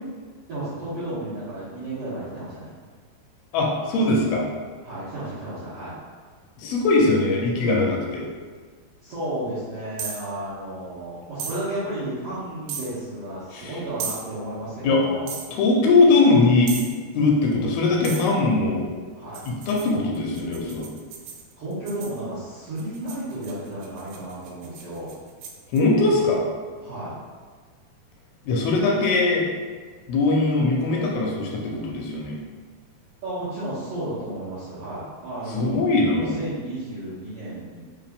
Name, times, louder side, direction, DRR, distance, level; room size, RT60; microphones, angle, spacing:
voice 1, 0.5-2.7 4.8-5.9 9.0-15.3 19.1-19.4 21.6-25.1 26.8-27.1 33.2-35.8 36.1-37.8, right 1 dB, 70° right, -14 dB, 1.4 m, -33 dB
voice 2, 3.5-4.5 6.6-8.3 13.5-13.7 14.8-15.0 15.6-16.8 17.1-18.8 19.5-20.9 25.7-26.5 28.4-29.5 30.1-32.4 35.5-36.4, left 3 dB, 85° left, -1 dB, 2.5 m, -20 dB
sound 1, 10.0-10.3 11.4-11.6 12.7-12.9 14.0-14.2 15.3-15.5 16.7-17.0 18.0-18.3 19.3-22.2 22.8-25.8, right 6 dB, 90° right, 2.6 m, -35 dB
5.7 x 2.6 x 3.5 m, 1.5 s
omnidirectional pair, 4.5 m